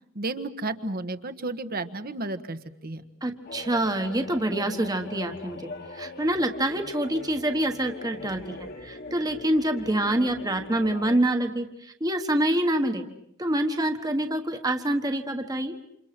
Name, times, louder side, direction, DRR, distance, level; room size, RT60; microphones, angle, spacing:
voice 1, 0.1-3.0, right 2 dB, 50° right, 10 dB, 1.4 m, -32 dB
voice 2, 3.2-11.7 12.0-13.0 13.4-15.7, right 1 dB, 20° right, 5 dB, 1.3 m, -26 dB
sound 1, 3.5-11.2, left 2 dB, 55° left, 1.9 m, -41 dB
29.0 x 27.5 x 6.0 m, 0.78 s
head